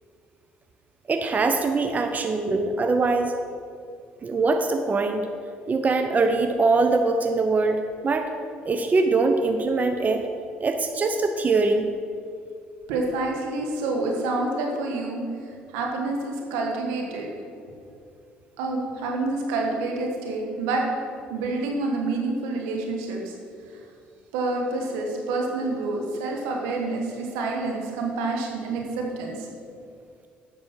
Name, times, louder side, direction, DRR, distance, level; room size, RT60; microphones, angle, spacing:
voice 1, 1.1-3.3 4.2-5.3 5.7-8.3 8.6-10.2 10.6-11.9, right 3 dB, 35° right, 6 dB, 0.7 m, -22 dB
voice 2, 12.9-15.3 15.7-17.3 18.6-20.9 21.3-23.3 24.3-29.5, right 3 dB, 80° right, 0 dB, 1.4 m, -28 dB
8.5 x 6.2 x 5.8 m, 2.4 s
hypercardioid pair, 60°, 5 cm